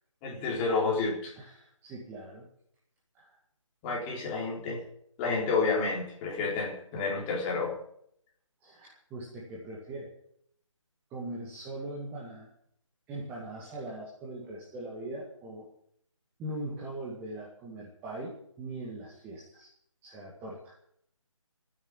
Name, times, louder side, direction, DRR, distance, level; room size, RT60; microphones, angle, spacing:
voice 1, 0.2-1.3 3.8-4.8 5.2-7.8, left 4 dB, 15° left, -2 dB, 3.9 m, -30 dB
voice 2, 1.4-2.5 3.1-3.4 8.6-10.1 11.1-12.5 13.1-15.7 16.4-19.7 20.0-20.7, right 1 dB, 10° right, -3 dB, 2.0 m, -41 dB
13.0 x 9.7 x 9.6 m, 0.69 s
figure-of-eight pair, 155°, 17 cm